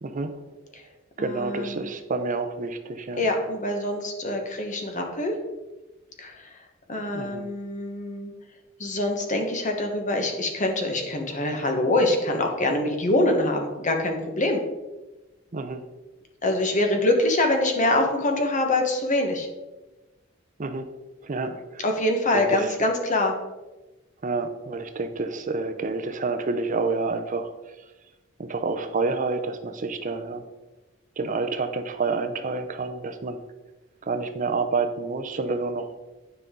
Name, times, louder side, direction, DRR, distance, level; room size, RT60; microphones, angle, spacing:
voice 1, 0.0-0.3 1.2-3.3 7.1-7.5 15.5-15.8 20.6-20.8 21.2-21.8 22.3-22.6 24.2-27.5 28.4-30.4 31.2-33.4 34.1-35.9, right 3 dB, 40° right, 8 dB, 0.6 m, -28 dB
voice 2, 1.2-1.9 3.2-5.3 6.2-6.5 6.9-8.3 8.8-14.6 16.4-19.5 21.8-23.3, left 1 dB, 40° left, 3 dB, 1.2 m, -24 dB
9.8 x 5.4 x 3.7 m, 1.1 s
head